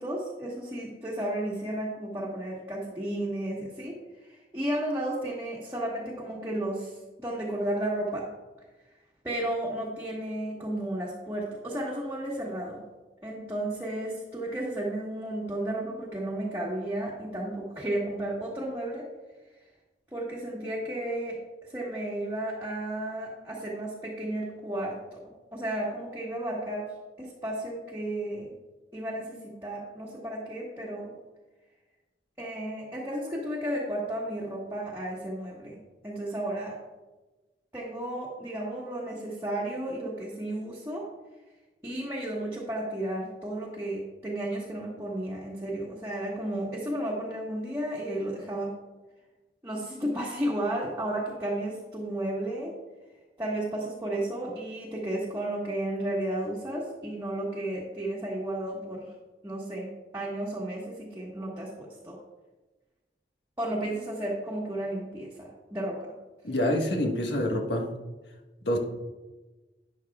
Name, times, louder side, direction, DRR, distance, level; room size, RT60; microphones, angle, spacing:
voice 1, 0.0-4.0 4.2-8.3 9.2-12.8 13.2-19.0 20.1-21.4 21.6-25.2 25.5-26.9 27.2-28.5 28.9-31.1 32.4-35.8 36.0-36.8 37.7-41.0 41.8-48.7 49.6-52.7 53.4-59.1 59.4-59.9 60.1-62.2 63.6-66.1 68.7-68.8, right 1 dB, 15° right, -5 dB, 1.4 m, -33 dB
voice 2, 66.4-67.9 68.6-68.8, left 1 dB, 80° left, 1 dB, 1.5 m, -26 dB
12.0 x 10.0 x 2.4 m, 1.2 s
head